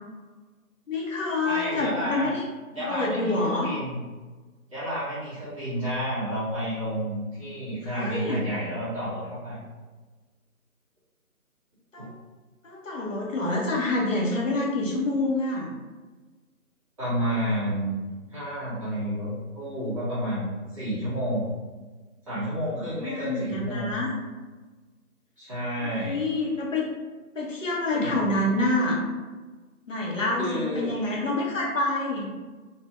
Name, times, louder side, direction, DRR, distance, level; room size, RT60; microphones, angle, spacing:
voice 1, 0.9-2.4 2.8-3.7 7.8-8.5 11.9-12.1 12.6-15.7 22.9-24.1 25.8-26.9 27.3-29.0 29.9-32.3, left 2 dB, 55° left, -3 dB, 1.3 m, -27 dB
voice 2, 1.4-2.3 2.7-4.0 4.7-9.6 12.0-12.1 17.0-18.0 18.3-21.5 22.3-24.0 25.4-26.2 27.9-28.2 30.4-30.9, equal, 20° right, -14 dB, 1.4 m, -30 dB
4.4 x 2.7 x 3.3 m, 1.3 s
figure-of-eight pair, 155°, 45 cm